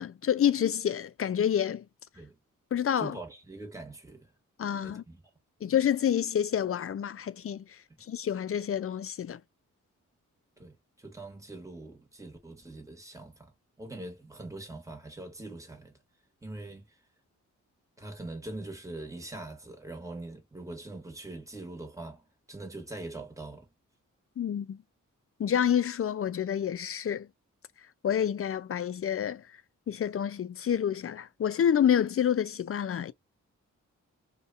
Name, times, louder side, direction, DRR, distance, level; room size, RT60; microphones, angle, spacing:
voice 1, 0.0-1.8 2.7-3.1 4.6-5.0 5.6-9.4 24.4-24.8 25.4-27.3 28.0-29.4 29.9-33.1, left 9 dB, 45° left, 0.4 m, -28 dB
voice 2, 3.0-4.3 4.8-5.2 10.6-13.5 13.8-15.9 16.4-16.9 18.0-23.7, right 2 dB, 10° right, 1.3 m, -43 dB
2.6 x 2.3 x 2.4 m
cardioid pair, 50°, 33 cm